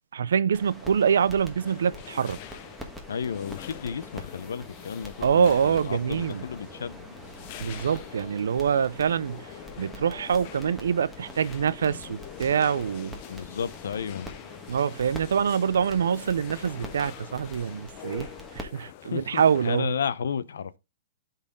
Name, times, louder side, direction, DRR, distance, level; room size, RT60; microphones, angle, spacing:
voice 1, 0.1-2.4 5.2-6.4 7.6-9.5 9.8-13.2 14.7-19.9, right 7 dB, 85° right, 0.4 m, -25 dB
sound 1, 0.5-18.6, equal, ahead, 1.3 m, -45 dB
sound 2, 1.6-19.8, left 12 dB, 40° left, 0.6 m, -45 dB
voice 2, 3.1-7.0 13.3-14.3 19.1-20.8, left 7 dB, 85° left, 0.6 m, -33 dB
sound 3, 5.2-8.5, right 4 dB, 15° right, 1.8 m, -51 dB
11.5 x 4.1 x 3.6 m
hypercardioid pair, 150°, 0 cm